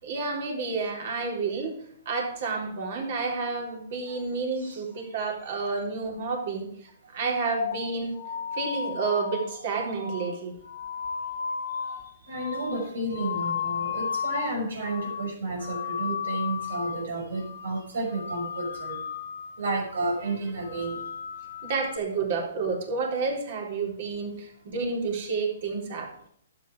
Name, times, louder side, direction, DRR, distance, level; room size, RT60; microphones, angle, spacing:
voice 1, 0.0-1.8 2.1-6.7 7.1-8.1 8.5-10.6 11.8-12.0 21.6-26.1, right 4 dB, 50° right, 1 dB, 3.9 m, -30 dB
sound 1, 7.6-14.6 14.8-15.3 15.6-17.1 17.4-17.8 18.1-19.6 19.9-20.3 20.6-22.0, left 7 dB, 70° left, 1.6 m, -34 dB
voice 2, 12.3-19.0 19.6-21.0, right 2 dB, 75° right, 3 dB, 5.8 m, -31 dB
12.0 x 8.7 x 4.9 m, 0.65 s
hypercardioid pair, 160°, 0 cm